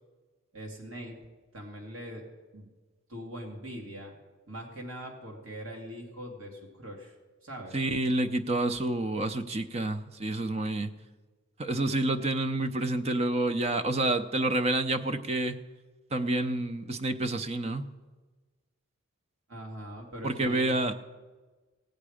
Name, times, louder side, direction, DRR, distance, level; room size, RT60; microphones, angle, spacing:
voice 1, 0.5-1.2 1.5-2.2 2.5-2.7 3.1-4.1 4.5-7.1 7.4-7.8 19.5-20.8, equal, 80° right, 1 dB, 2.3 m, -42 dB
voice 2, 7.7-10.9 11.6-15.6 16.1-17.9 20.2-20.9, right 2 dB, 30° right, 8 dB, 0.5 m, -28 dB
17.0 x 8.0 x 5.0 m, 1.3 s
head